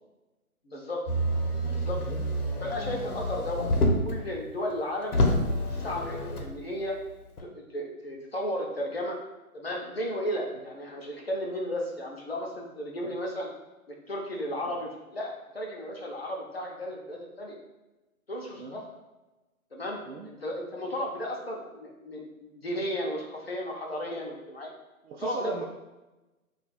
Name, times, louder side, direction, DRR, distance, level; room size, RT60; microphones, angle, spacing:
voice 1, 0.6-1.0 1.7-2.0 2.6-5.2 5.7-7.0 7.5-9.2 9.5-13.5 13.9-17.6 18.3-18.8 19.7-24.7 25.2-25.6, equal, 45° left, -1 dB, 0.5 m, -34 dB
Motor vehicle (road), 1.1-4.2 4.7-4.8 5.1-6.5 7.4-7.5, equal, 90° left, 0.8 m, -27 dB
voice 2, 25.0-25.6, right 5 dB, 85° right, 1 dB, 0.5 m, -38 dB
2.4 x 2.3 x 3.9 m, 1.1 s
hypercardioid pair, 175°, 44 cm